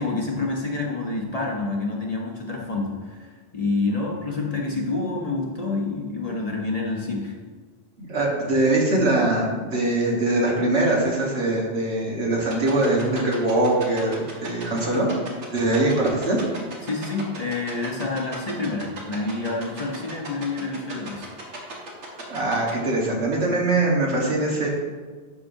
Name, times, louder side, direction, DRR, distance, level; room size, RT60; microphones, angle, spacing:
voice 1, 0.0-7.3 16.8-21.3, left 3 dB, 40° left, -1 dB, 0.8 m, -28 dB
voice 2, 8.0-15.1 15.5-16.4 22.3-24.7, right 2 dB, 70° right, -2 dB, 1.6 m, -22 dB
sound 1, 12.5-22.7, right 3 dB, 85° right, 1.5 m, -36 dB
10.5 x 4.9 x 2.6 m, 1.4 s
omnidirectional pair, 1.2 m